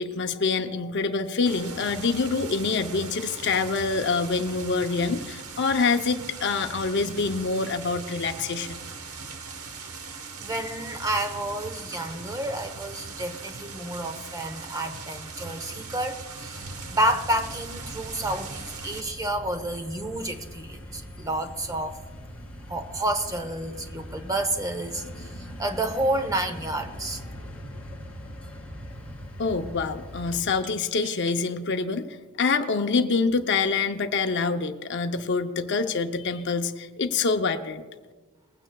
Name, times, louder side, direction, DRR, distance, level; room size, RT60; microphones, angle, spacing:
voice 1, 0.0-8.8 29.4-32.1 32.4-37.8, left 4 dB, 50° left, 7 dB, 0.6 m, -26 dB
sound 1, 1.5-19.0, right 4 dB, 80° right, 1.1 m, -40 dB
voice 2, 10.4-22.0 22.7-27.2, right 1 dB, 15° right, 6 dB, 0.8 m, -30 dB
sound 2, 16.5-30.4, equal, 5° left, 2.2 m, -41 dB
sound 3, 28.1-28.3 30.3-31.4 32.1-32.2 33.1-33.4, right 3 dB, 40° right, 1.6 m, -48 dB
20.0 x 15.5 x 2.3 m, 1.3 s
head